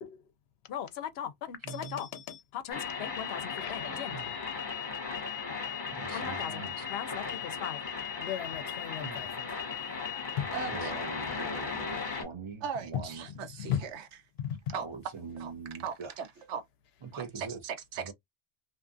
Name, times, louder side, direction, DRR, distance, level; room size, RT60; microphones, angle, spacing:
voice 1, 0.7-4.7 6.1-7.8 8.2-9.6 10.4-10.6 12.9-13.0 13.3-13.8 14.4-14.7, left 9 dB, 70° left, 0.8 m, -37 dB
voice 2, 1.6-2.0 3.9-4.3 5.9-6.8 8.9-9.3 10.7-13.3 14.7-16.1 17.0-17.6 18.0-18.1, right 4 dB, 45° right, 0.4 m, -42 dB
sound 1, 2.7-12.2, left 5 dB, 50° left, 1.0 m, -36 dB
voice 3, 10.5-10.9 12.6-14.1 14.7-14.9 15.4-15.5 15.8-16.6 17.1-18.1, right 6 dB, 90° right, 1.0 m, -38 dB
2.6 x 2.4 x 2.5 m
omnidirectional pair, 1.1 m